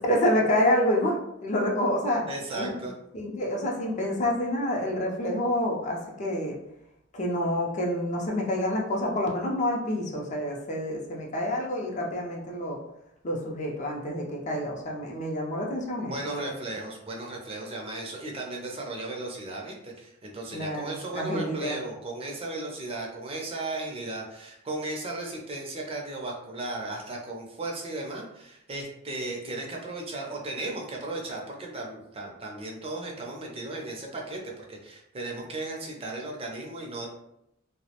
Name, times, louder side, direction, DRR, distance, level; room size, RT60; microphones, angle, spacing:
voice 1, 0.1-2.2 2.5-2.7 3.1-6.6 7.1-12.8 13.2-16.5 20.5-21.8, left 1 dB, 35° left, -1 dB, 0.4 m, -28 dB
voice 2, 2.3-2.9 16.0-37.1, right 2 dB, 30° right, 0 dB, 0.5 m, -36 dB
2.3 x 2.0 x 2.8 m, 0.80 s
head